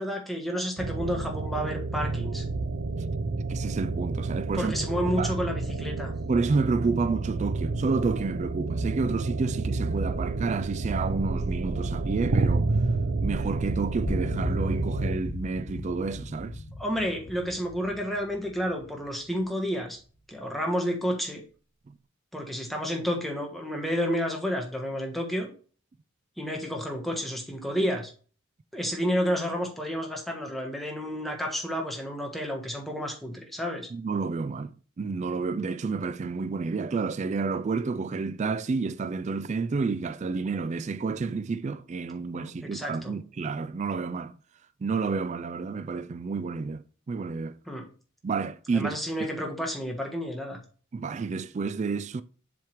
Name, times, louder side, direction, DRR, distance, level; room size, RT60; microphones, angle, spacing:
voice 1, 0.0-2.4 4.5-6.1 16.8-20.0 20.3-21.4 22.3-25.5 26.4-28.1 28.7-33.9 42.3-43.1 47.7-47.9 48.7-50.6, equal, ahead, 1.4 m, -30 dB
sound 1, 0.8-15.1, right 3 dB, 85° right, 0.8 m, -29 dB
voice 2, 3.5-4.7 5.2-5.4 6.3-12.7 13.2-16.6 21.9-22.0 33.9-34.7 35.0-44.3 44.8-47.6 48.2-48.9 50.9-52.2, right 4 dB, 35° right, 0.3 m, -30 dB
sound 2, 14.1-19.4, left 1 dB, 65° left, 1.0 m, -37 dB
7.5 x 3.6 x 4.6 m
head